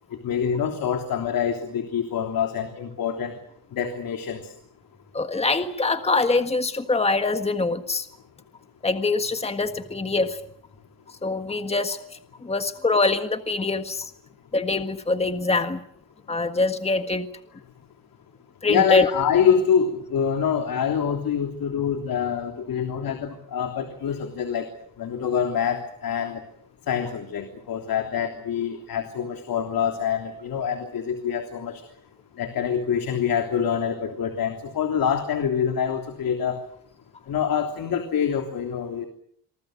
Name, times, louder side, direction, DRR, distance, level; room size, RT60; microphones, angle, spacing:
voice 1, 0.2-3.3 3.7-4.5 18.7-24.7 25.0-26.4 26.9-31.8 32.4-36.6 37.3-39.1, left 7 dB, 70° left, 5 dB, 3.3 m, -25 dB
voice 2, 5.1-8.1 8.8-10.4 11.2-12.0 12.4-14.1 14.5-15.8 16.3-17.3 18.6-19.1, left 3 dB, 15° left, 8 dB, 1.6 m, -24 dB
27.0 x 24.5 x 6.6 m, 0.68 s
cardioid pair, 115°, 36 cm